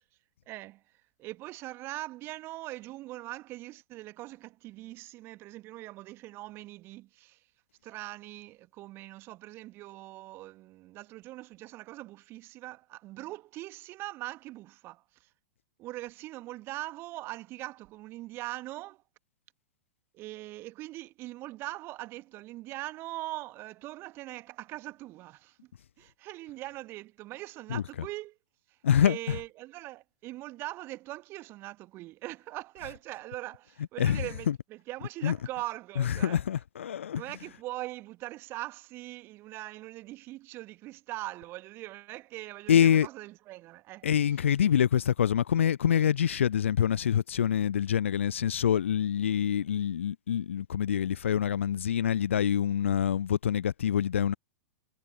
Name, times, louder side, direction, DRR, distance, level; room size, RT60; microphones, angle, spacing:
voice 1, 0.5-0.8 1.2-7.4 7.8-15.3 15.8-19.0 20.1-25.6 26.0-28.4 28.7-36.4 37.1-44.1, right 17 dB, 30° right, 1.7 m, -41 dB
voice 2, 28.8-29.4 34.0-34.6 35.2-35.4 36.0-37.2 42.7-43.1 44.0-54.3, left 9 dB, 65° left, 0.4 m, -26 dB
figure-of-eight pair, 100°, 7 cm